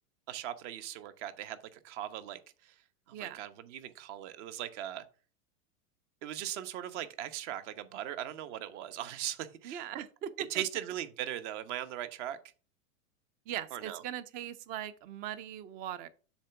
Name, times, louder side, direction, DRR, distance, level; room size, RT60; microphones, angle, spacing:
voice 1, 0.3-2.7 3.1-5.0 6.2-9.9 10.5-12.4 13.7-14.0, right 11 dB, 55° right, 1.0 m, -39 dB
voice 2, 9.6-10.6 13.5-16.1, right 10 dB, 25° right, 0.3 m, -40 dB
7.2 x 3.5 x 5.7 m
hypercardioid pair, 115°, 42 cm